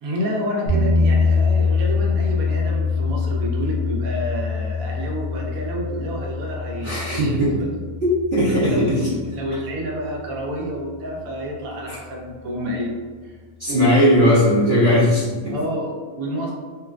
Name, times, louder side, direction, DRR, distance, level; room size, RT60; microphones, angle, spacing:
voice 1, 0.0-7.7 8.5-12.9 13.2-13.4 15.5-16.5, equal, 80° right, -2 dB, 1.1 m, -29 dB
sound 1, 0.7-10.7, left 4 dB, 50° left, 1.1 m, -24 dB
voice 2, 6.8-7.5 8.0-9.1 11.9-12.0 13.6-15.5, equal, 50° right, -11 dB, 0.9 m, -18 dB
3.7 x 2.2 x 2.4 m, 1.5 s
omnidirectional pair, 1.5 m